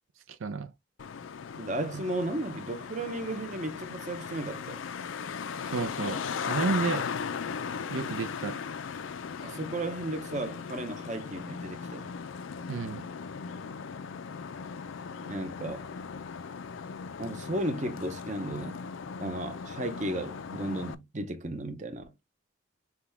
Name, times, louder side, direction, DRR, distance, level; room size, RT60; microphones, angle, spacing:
Traffic noise roadway noise, 1.0-21.0, left 6 dB, 80° left, 0.4 m, -38 dB
voice 1, 1.5-4.8 9.4-12.2 15.3-15.9 17.2-18.8 19.2-22.1, right 1 dB, 35° right, 0.7 m, -34 dB
voice 2, 5.7-7.0 7.9-8.6 12.7-13.0, right 4 dB, 85° right, 0.5 m, -31 dB
6.0 x 2.3 x 3.4 m
head